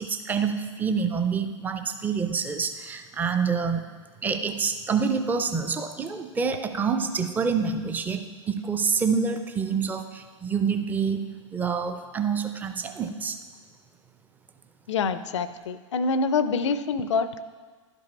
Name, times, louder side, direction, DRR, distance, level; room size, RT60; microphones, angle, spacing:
voice 1, 0.0-3.8 4.2-8.2 8.5-11.3 11.5-13.4, right 5 dB, 10° right, 8 dB, 0.5 m, -27 dB
voice 2, 14.9-17.4, left 4 dB, 65° left, 14 dB, 0.5 m, -26 dB
11.5 x 5.3 x 4.1 m, 1.5 s
figure-of-eight pair, 95°, 16 cm